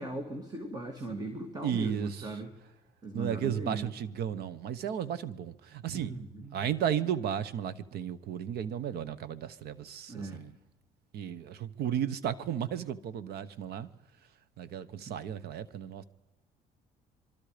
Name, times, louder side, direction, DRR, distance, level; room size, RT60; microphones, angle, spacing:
voice 1, 0.0-2.5 3.0-3.9 5.9-6.6 10.1-10.5 15.1-15.2, right 2 dB, 25° right, 2.6 m, -39 dB
voice 2, 1.6-2.2 3.1-6.1 6.5-10.5 11.1-13.9 14.6-16.0, right 9 dB, 70° right, 1.2 m, -34 dB
25.5 x 23.5 x 5.2 m
cardioid pair, 110°, 17 cm